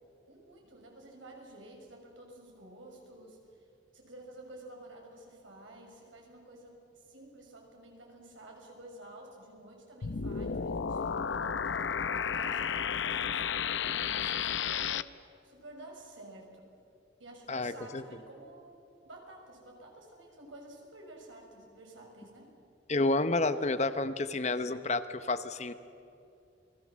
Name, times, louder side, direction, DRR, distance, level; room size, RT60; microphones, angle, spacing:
voice 1, 0.3-3.4 3.9-11.6 12.2-15.0 15.4-16.6 17.2-18.7 19.0-22.5, right 1 dB, 85° right, 0 dB, 6.4 m, -51 dB
sound 1, 10.0-15.0, left 7 dB, 75° left, 0.7 m, -32 dB
voice 2, 17.5-18.0 22.9-25.7, left 2 dB, 35° left, 12 dB, 0.9 m, -30 dB
28.5 x 21.0 x 7.5 m, 2.6 s
head